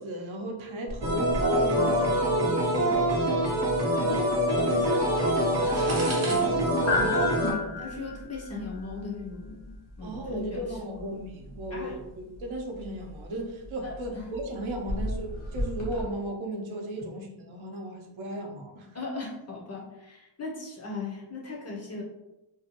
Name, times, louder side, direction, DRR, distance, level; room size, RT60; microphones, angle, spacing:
voice 1, 0.0-3.4 3.9-4.8 10.0-18.9, right 1 dB, 70° right, 1 dB, 0.6 m, -36 dB
sound 1, 0.9-16.0, left 2 dB, 85° left, 1.1 m, -36 dB
sound 2, 1.0-7.5, right 1 dB, 30° right, 0.7 m, -25 dB
voice 2, 4.7-11.2 11.7-12.0 13.8-14.2 18.9-22.0, left 4 dB, 35° left, -2 dB, 0.4 m, -37 dB
2.6 x 2.0 x 2.8 m, 0.95 s
wide cardioid pair, 170°, 50 cm